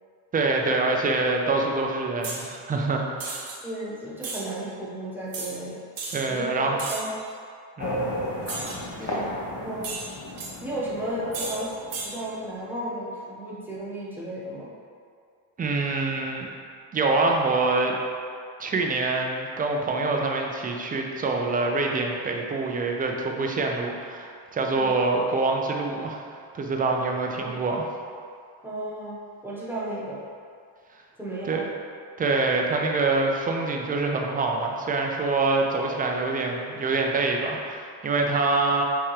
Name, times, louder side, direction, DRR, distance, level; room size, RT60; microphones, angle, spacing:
voice 1, 0.3-3.5 6.1-6.8 7.8-8.2 9.0-9.2 15.6-16.5 16.9-18.0 18.6-26.2 26.5-27.9 31.5-31.7 32.2-38.8, right 3 dB, 20° right, 1 dB, 0.4 m, -25 dB
sound 1, 2.2-2.5 3.2-3.6 4.2-4.4 5.3-5.5 6.0-6.2 6.8-7.2 8.5-8.8 9.8-10.5 11.3-11.6 11.9-12.1, right 4 dB, 45° right, 0.9 m, -34 dB
voice 2, 3.6-5.8 6.3-7.1 9.0-10.0 10.6-11.7 12.0-14.7 24.7-25.0 27.3-27.5 28.6-30.2 31.2-31.7, right 1 dB, 5° right, -8 dB, 1.0 m, -34 dB
sound 2, 7.8-12.6, left 1 dB, 30° left, 0.7 m, -33 dB
4.3 x 3.6 x 3.1 m, 2.3 s
cardioid pair, 105°, 48 cm